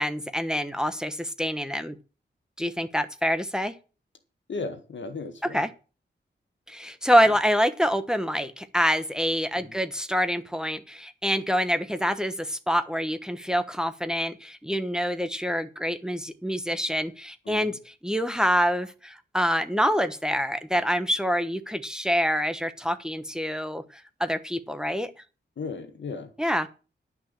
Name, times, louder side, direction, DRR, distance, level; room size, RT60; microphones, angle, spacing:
voice 1, 0.0-1.9 2.6-3.7 5.5-5.7 6.7-25.1 26.4-26.7, equal, 5° right, 1.0 m, -26 dB
voice 2, 4.5-5.6 9.6-9.7 17.5-17.8 25.6-26.3, left 4 dB, 75° left, 1.9 m, -36 dB
11.0 x 6.0 x 7.5 m
wide cardioid pair, 115°, 19 cm